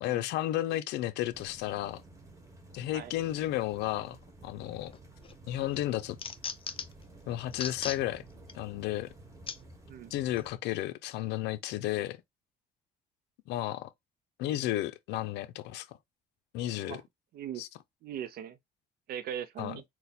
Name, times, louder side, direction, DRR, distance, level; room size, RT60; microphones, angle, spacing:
voice 1, 0.0-2.0 2.7-4.9 5.5-6.2 7.3-8.2 8.5-9.1 10.1-12.2 13.5-13.9 14.4-15.9 16.5-17.0 17.6-17.7 19.6-19.8, left 14 dB, 85° left, 0.5 m, -33 dB
sound 1, 1.3-10.5, right 2 dB, 20° right, 1.3 m, -53 dB
sound 2, 4.9-5.3 5.7-7.0 7.5-8.0 8.5-8.6 9.5-9.6 10.4-10.5, left 6 dB, 30° left, 0.5 m, -37 dB
voice 2, 18.0-18.6 19.1-19.8, right 9 dB, 65° right, 0.6 m, -39 dB
4.1 x 2.3 x 4.1 m
cardioid pair, 110°, 17 cm